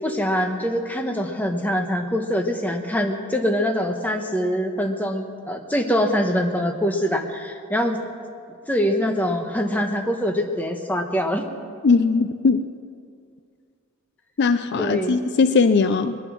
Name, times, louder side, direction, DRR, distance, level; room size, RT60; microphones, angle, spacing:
voice 1, 0.0-8.0 8.7-11.5 14.8-15.2, equal, 5° left, 3 dB, 1.0 m, -24 dB
voice 2, 11.8-12.7 14.4-16.2, left 4 dB, 50° left, 11 dB, 0.4 m, -19 dB
21.0 x 10.5 x 6.2 m, 2.3 s
head